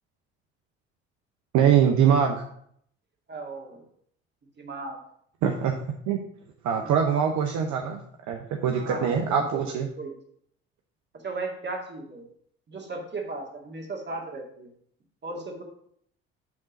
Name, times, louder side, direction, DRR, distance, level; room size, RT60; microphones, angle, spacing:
voice 1, 1.5-2.4 5.4-5.8 6.1-6.2 6.6-8.0 8.3-9.9, right 8 dB, 65° right, 3 dB, 0.8 m, -23 dB
voice 2, 3.3-3.9 4.6-5.0 6.8-7.1 8.7-10.2 11.2-12.2 12.7-14.7 15.2-15.6, right 3 dB, 35° right, 1 dB, 2.1 m, -36 dB
7.6 x 3.8 x 5.2 m, 0.67 s
hypercardioid pair, 60°, 31 cm